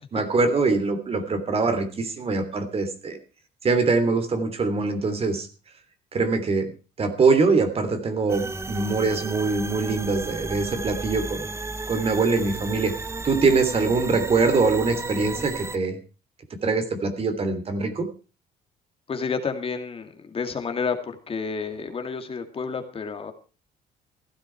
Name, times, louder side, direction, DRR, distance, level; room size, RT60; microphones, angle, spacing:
voice 1, 0.1-3.2 3.6-5.5 6.1-6.7 7.0-11.5 11.9-12.9 13.2-16.0 16.6-18.1, right 4 dB, 35° right, 10 dB, 3.1 m, -23 dB
sound 1, 8.3-15.8, right 3 dB, 15° right, 0.9 m, -34 dB
voice 2, 19.1-23.3, left 5 dB, 35° left, 6 dB, 2.3 m, -30 dB
16.0 x 12.5 x 4.6 m, 0.36 s
cardioid pair, 110°, 17 cm